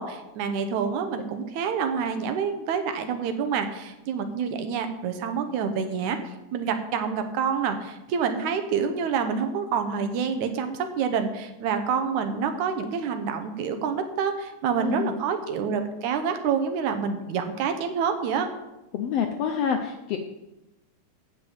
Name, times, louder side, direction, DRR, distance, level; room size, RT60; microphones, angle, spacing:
voice 1, 0.0-6.2 6.5-18.5, right 6 dB, 75° right, 8 dB, 2.2 m, -27 dB
voice 2, 14.8-15.1 18.9-20.2, left 7 dB, 75° left, 5 dB, 1.5 m, -27 dB
8.8 x 6.4 x 7.7 m, 0.96 s
omnidirectional pair, 3.6 m